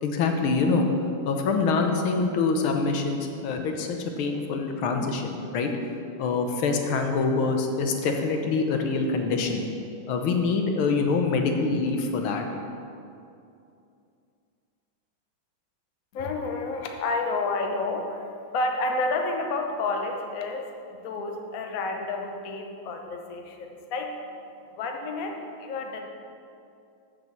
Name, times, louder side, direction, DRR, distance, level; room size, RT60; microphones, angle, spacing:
voice 1, 0.0-0.9 1.2-5.7 6.2-9.6 10.1-12.5, left 4 dB, 80° left, 4 dB, 1.7 m, -25 dB
voice 2, 16.1-20.7 21.0-24.1 24.7-26.0, left 3 dB, 55° left, 3 dB, 1.0 m, -30 dB
6.9 x 6.5 x 7.3 m, 2.5 s
omnidirectional pair, 2.3 m